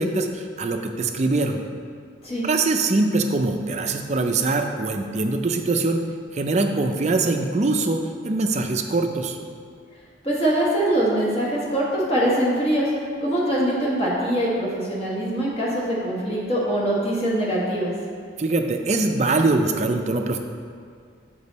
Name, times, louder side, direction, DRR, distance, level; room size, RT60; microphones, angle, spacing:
voice 1, 0.0-1.6 2.4-6.0 6.3-9.4 18.4-20.4, right 3 dB, 35° right, 5 dB, 0.4 m, -23 dB
voice 2, 10.2-12.9 13.2-17.9, right 1 dB, 30° left, -6 dB, 1.5 m, -23 dB
6.8 x 5.3 x 4.1 m, 2.1 s
head